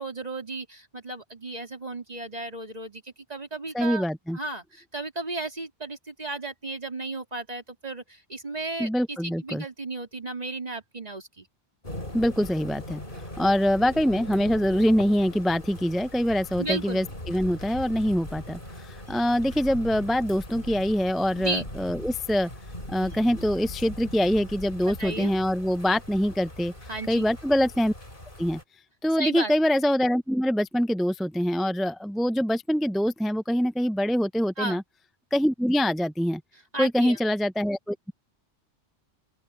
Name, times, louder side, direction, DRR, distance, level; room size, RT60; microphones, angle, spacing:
voice 1, 0.0-4.0 4.3-11.5 16.6-17.0 21.4-21.7 24.8-25.3 26.9-27.2 29.2-29.5 34.6-34.8 36.7-37.2, right 2 dB, 35° right, 3.8 m, -34 dB
voice 2, 3.7-4.4 8.8-9.6 12.1-13.0 13.4-22.5 22.9-26.7 27.1-27.9 28.4-28.6 29.0-34.8 35.3-36.4 36.8-38.1, equal, ahead, 0.4 m, -24 dB
sound 1, 11.8-28.6, left 1 dB, 45° left, 5.8 m, -40 dB
open air
omnidirectional pair, 1.2 m